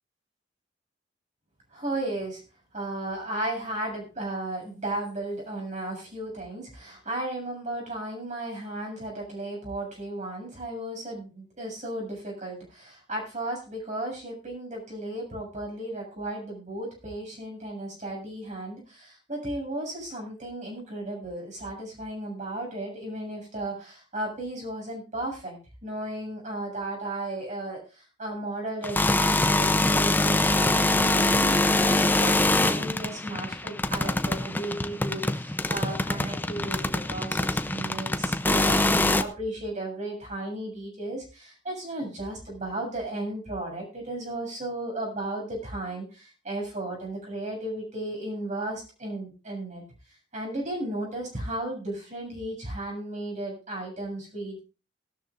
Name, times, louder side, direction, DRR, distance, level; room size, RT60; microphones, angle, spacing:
voice 1, 1.7-2.4 2.7-25.6 25.8-49.8 50.3-54.6, right 1 dB, 40° right, 0 dB, 7.4 m, -35 dB
sound 1, 28.8-39.2, left 2 dB, 10° left, 0.6 m, -24 dB
17.5 x 13.0 x 2.6 m, 0.33 s
head